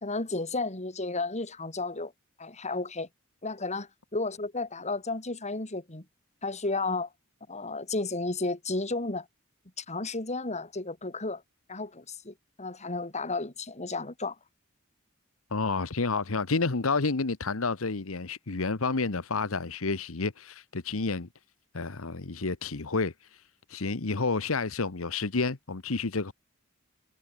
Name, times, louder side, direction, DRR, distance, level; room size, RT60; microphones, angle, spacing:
voice 1, 0.0-2.1 2.4-3.1 3.4-6.0 6.4-7.1 7.5-9.3 9.8-11.4 11.7-14.4, left 3 dB, 35° left, 3.2 m, -33 dB
voice 2, 15.5-21.3 21.7-23.1 23.7-26.3, left 3 dB, 85° left, 1.2 m, -30 dB
head